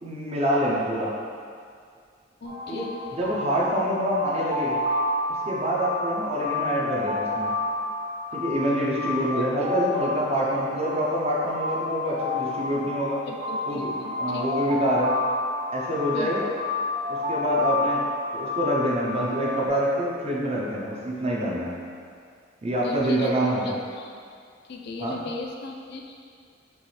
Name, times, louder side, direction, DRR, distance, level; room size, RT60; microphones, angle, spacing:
voice 1, 0.0-1.1 2.7-4.8 5.5-7.5 8.3-13.2 13.7-13.9 14.2-15.1 15.7-16.5 17.1-18.0 18.3-21.7 22.6-23.7 25.0-25.2, equal, 35° right, -4 dB, 0.7 m, -26 dB
voice 2, 2.4-3.0 13.3-14.4 16.1-16.4 22.8-23.3 23.6-24.1 24.7-26.2, left 3 dB, 60° left, 2 dB, 0.4 m, -37 dB
sound 1, 2.4-19.7, left 2 dB, 70° right, 1.5 m, -30 dB
4.6 x 3.1 x 3.2 m, 2.2 s
head